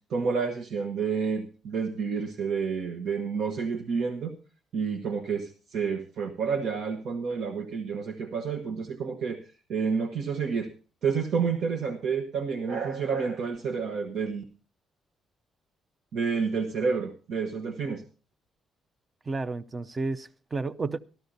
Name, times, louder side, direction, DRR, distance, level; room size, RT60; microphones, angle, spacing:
voice 1, 0.1-4.3 4.7-9.4 9.7-10.7 11.0-14.4 16.1-18.0, right 5 dB, 70° right, 1.3 m, -29 dB
voice 2, 19.3-21.0, right 3 dB, 30° right, 0.7 m, -32 dB
13.5 x 12.5 x 4.0 m
cardioid pair, 90°, 0 cm